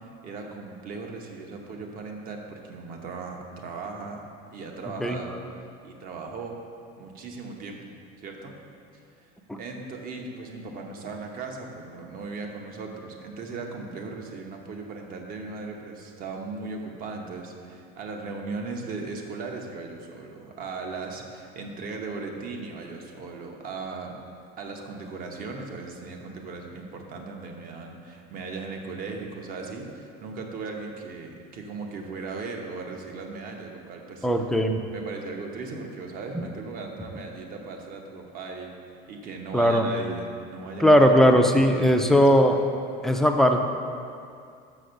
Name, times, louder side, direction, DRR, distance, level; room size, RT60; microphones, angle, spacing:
voice 1, 0.0-4.2 4.5-5.4 5.8-6.6 7.0-7.8 8.2-8.6 9.2-9.3 9.6-24.2 24.6-34.3 34.9-38.7 39.1-42.4, right 4 dB, 45° right, 2 dB, 1.1 m, -37 dB
voice 2, 34.2-34.8 39.5-39.9 40.8-42.6 43.0-43.6, equal, ahead, 3 dB, 0.4 m, -18 dB
6.4 x 6.0 x 6.6 m, 2.4 s
cardioid pair, 135°, 20 cm